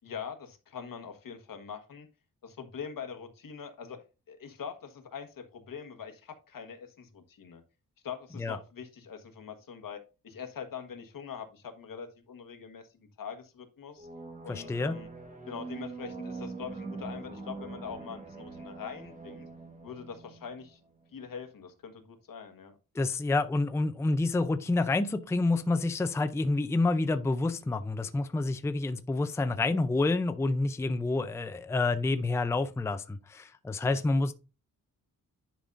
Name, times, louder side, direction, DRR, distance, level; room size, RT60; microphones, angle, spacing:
voice 1, 0.0-2.1 2.4-7.6 8.0-14.1 14.4-15.1 15.5-19.5 19.8-20.8 21.1-22.7 33.8-34.0, left 7 dB, 75° left, 1.4 m, -43 dB
sound 1, 14.0-21.4, right 3 dB, 25° right, 1.4 m, -43 dB
voice 2, 14.5-15.0 23.0-34.3, left 2 dB, 10° left, 0.4 m, -28 dB
10.0 x 5.4 x 2.5 m
wide cardioid pair, 150°, 34 cm